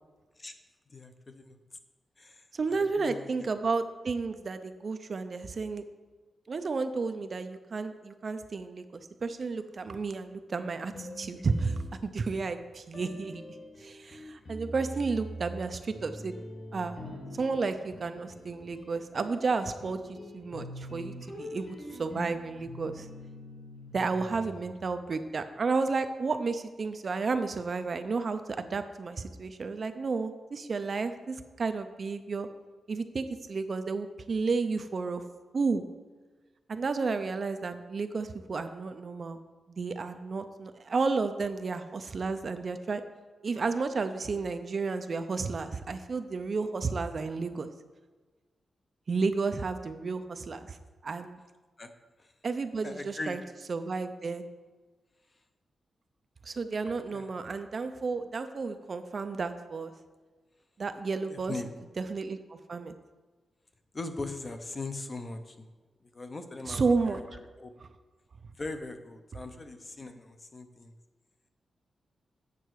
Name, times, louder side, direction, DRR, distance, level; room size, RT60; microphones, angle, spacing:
voice 1, 0.9-1.6 2.2-3.5 51.8-51.9 52.2-52.3 52.8-53.4 57.1-57.3 61.3-61.8 63.9-65.7 66.0-67.7 68.6-70.9, left 2 dB, 25° left, 7 dB, 0.6 m, -40 dB
voice 2, 2.5-5.8 6.5-13.5 13.8-16.3 16.7-17.0 17.3-23.1 23.9-32.5 32.9-35.2 35.5-35.8 36.7-39.4 39.7-43.0 43.4-47.7 49.1-50.8 51.0-51.4 52.4-53.4 53.7-54.4 56.5-59.9 60.8-61.5 62.0-62.9 66.7-67.2, right 4 dB, 40° right, 9 dB, 0.4 m, -32 dB
sound 1, 10.9-12.4 12.9-25.1, equal, 40° left, 1.6 m, -44 dB
8.3 x 6.5 x 4.6 m, 1.3 s
wide cardioid pair, 165°, 0 cm